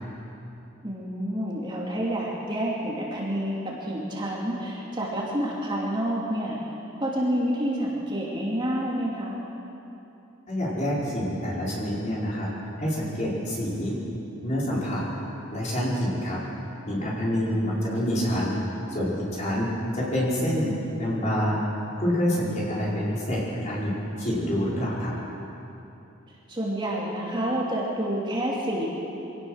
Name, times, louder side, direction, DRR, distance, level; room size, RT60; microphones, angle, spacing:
voice 1, 0.8-6.6 7.0-9.3 17.5-18.0 26.5-28.9, equal, 20° right, -4 dB, 2.6 m, -28 dB
voice 2, 10.5-13.9 14.4-15.0 15.5-16.4 16.9-18.6 18.9-20.7 21.0-21.7 22.0-23.9 24.2-25.1, equal, 35° left, -6 dB, 4.9 m, -27 dB
24.5 x 17.0 x 6.5 m, 2.9 s
head